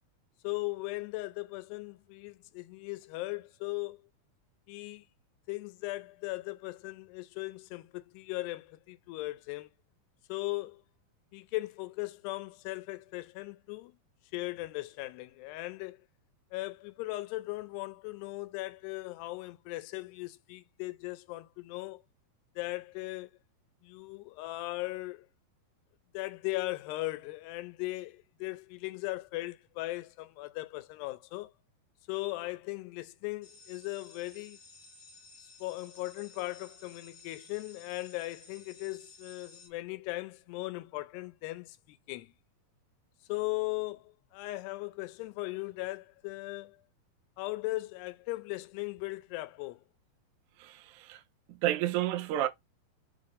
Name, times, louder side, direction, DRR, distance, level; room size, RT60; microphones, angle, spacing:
voice 1, 0.4-4.0 4.7-5.0 5.5-9.7 10.3-10.8 11.3-14.0 14.3-16.0 16.5-22.0 22.6-23.3 23.8-25.3 26.1-31.5 32.1-34.6 35.6-42.3 43.3-46.8 47.4-49.8, left 20 dB, 85° left, 2.6 m, -38 dB
sound 1, 33.4-39.7, left 3 dB, 45° left, 2.2 m, -55 dB
voice 2, 50.6-51.2 51.6-52.5, right 13 dB, 75° right, 1.8 m, -30 dB
7.0 x 3.7 x 3.6 m
omnidirectional pair, 4.7 m